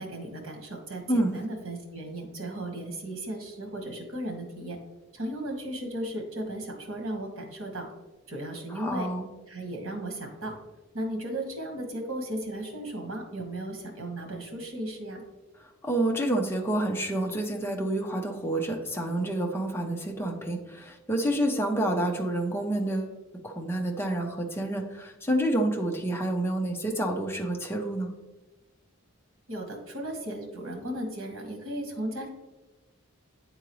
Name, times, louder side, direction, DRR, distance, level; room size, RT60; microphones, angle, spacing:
voice 1, 0.0-4.8 5.1-7.9 8.3-9.1 9.5-10.5 10.9-15.2 29.5-32.3, right 1 dB, 85° right, 3 dB, 1.4 m, -35 dB
voice 2, 1.1-1.4 8.7-9.2 15.8-28.1, right 1 dB, 10° left, 1 dB, 0.6 m, -28 dB
9.0 x 3.8 x 3.1 m, 1.1 s
head